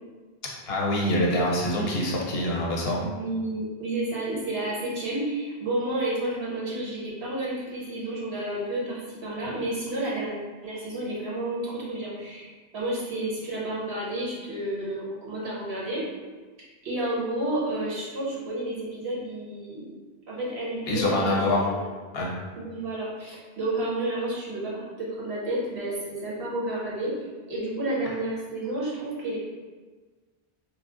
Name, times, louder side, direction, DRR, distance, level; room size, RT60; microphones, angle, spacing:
voice 1, 0.7-3.0 20.9-21.7 22.1-22.4, left 1 dB, 75° left, -2 dB, 0.9 m, -25 dB
voice 2, 2.9-10.3 10.6-16.1 16.8-19.9 20.3-21.8 22.5-29.4, right 1 dB, 85° right, -6 dB, 1.3 m, -31 dB
3.1 x 2.0 x 3.6 m, 1.4 s
omnidirectional pair, 1.0 m